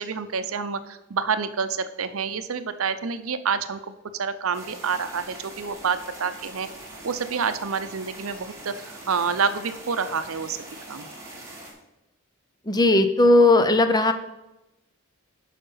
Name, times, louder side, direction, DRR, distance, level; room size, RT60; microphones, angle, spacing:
voice 1, 0.0-3.9 4.2-6.7 7.0-10.6 10.9-11.1, right 6 dB, 70° right, 12 dB, 0.6 m, -28 dB
sound 1, 4.5-11.7, right 1 dB, 15° right, 2.3 m, -42 dB
voice 2, 12.7-14.1, left 2 dB, 20° left, 8 dB, 0.6 m, -17 dB
11.0 x 5.0 x 5.6 m, 0.95 s
head